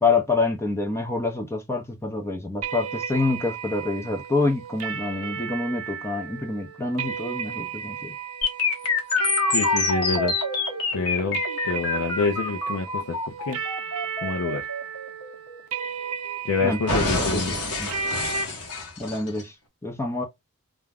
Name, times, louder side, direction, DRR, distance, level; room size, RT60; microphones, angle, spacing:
voice 1, 0.0-8.2 16.6-16.8 17.1-17.9 19.0-19.6 19.8-20.2, left 3 dB, 10° left, 0.5 m, -27 dB
sound 1, 2.6-18.4, right 5 dB, 70° right, 0.5 m, -33 dB
sound 2, 8.4-16.4 16.9-19.4, left 3 dB, 90° left, 0.9 m, -27 dB
voice 2, 9.5-10.3 10.9-13.6 14.2-14.6 16.4-17.5, left 4 dB, 75° left, 0.4 m, -27 dB
2.4 x 2.1 x 3.3 m
head